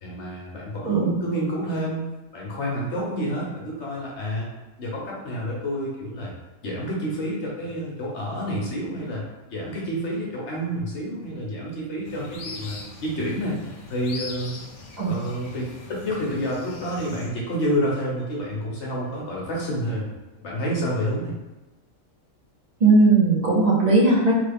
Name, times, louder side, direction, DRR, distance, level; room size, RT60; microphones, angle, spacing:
voice 1, 0.0-2.0 2.3-4.5 4.8-6.3 6.6-9.3 9.5-13.6 13.9-14.6 15.0-20.1 20.4-21.4, equal, 55° left, -4 dB, 1.1 m, -29 dB
sound 1, 12.0-17.3, left 3 dB, 75° left, 1.1 m, -40 dB
voice 2, 22.8-24.3, right 3 dB, 35° right, -5 dB, 0.7 m, -18 dB
3.3 x 2.3 x 3.4 m, 1.1 s
omnidirectional pair, 1.5 m